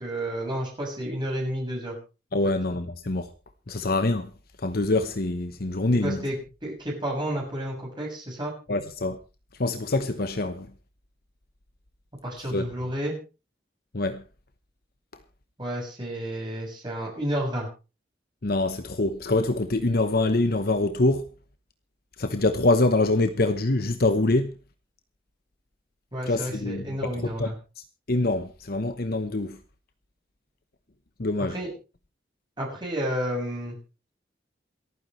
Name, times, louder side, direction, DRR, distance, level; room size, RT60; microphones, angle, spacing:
voice 1, 0.0-2.0 6.0-8.5 12.2-13.1 15.6-17.7 26.1-27.5 31.5-31.7 32.6-33.8, equal, 25° right, 6.8 m, -31 dB
voice 2, 2.3-3.3 3.7-4.3 4.6-6.2 8.7-9.2 9.6-10.7 12.5-12.7 13.9-14.2 18.4-21.3 22.2-24.5 26.3-27.5 28.1-29.6 31.2-31.6, left 2 dB, 60° left, 1.0 m, -25 dB
28.0 x 9.7 x 3.2 m
head